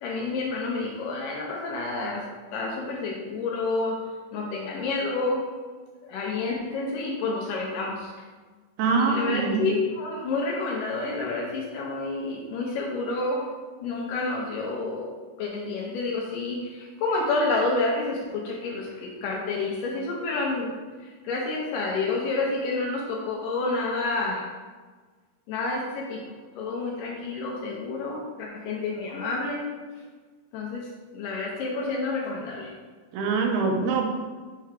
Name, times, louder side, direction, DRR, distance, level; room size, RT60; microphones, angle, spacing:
voice 1, 0.0-2.3 2.5-4.0 4.3-5.5 6.0-8.1 9.0-13.5 13.8-15.1 15.4-20.7 21.0-24.5 25.5-29.7 30.5-30.9 31.1-32.7, left 3 dB, 75° left, -1 dB, 2.1 m, -29 dB
voice 2, 8.8-9.6 33.1-34.1, right 4 dB, 85° right, 2 dB, 2.7 m, -24 dB
6.5 x 3.5 x 4.9 m, 1.4 s
omnidirectional pair, 4.4 m